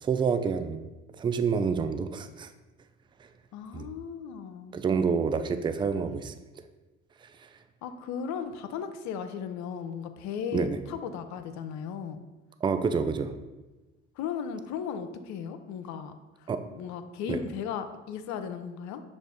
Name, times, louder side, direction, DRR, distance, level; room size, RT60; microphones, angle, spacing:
voice 1, 0.0-0.8 1.2-2.5 3.7-3.9 4.7-6.3 10.5-10.8 12.6-13.3 16.5-16.6 17.3-17.4, right 5 dB, 15° right, 9 dB, 0.3 m, -28 dB
voice 2, 3.5-4.8 6.0-6.2 7.8-12.2 14.2-16.1 16.4-19.0, left 7 dB, 55° left, 9 dB, 0.6 m, -36 dB
6.1 x 2.5 x 3.4 m, 1.1 s
hypercardioid pair, 60°, 34 cm